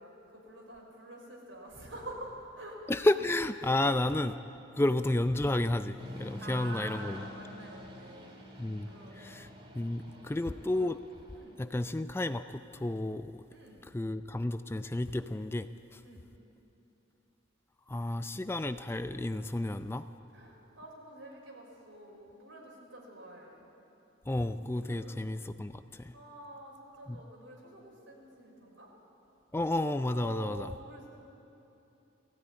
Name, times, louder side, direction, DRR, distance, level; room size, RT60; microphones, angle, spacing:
voice 1, 0.0-2.8 3.7-4.0 4.8-4.9 6.4-8.4 8.9-9.4 9.8-10.5 11.3-11.5 13.5-13.9 16.0-16.2 20.3-23.7 24.9-25.1 26.1-28.9 30.1-31.1, right 1 dB, 80° right, -1 dB, 5.5 m, -48 dB
voice 2, 2.9-4.3 4.8-7.2 8.6-8.9 9.2-9.5 9.7-11.0 11.6-13.4 13.9-16.0 17.9-20.1 24.3-26.1 27.1-27.2 29.5-30.7, left 1 dB, 10° left, 10 dB, 0.4 m, -31 dB
sound 1, 6.0-11.8, left 1 dB, 30° right, 2.2 m, -48 dB
19.5 x 15.5 x 9.7 m, 2.9 s
head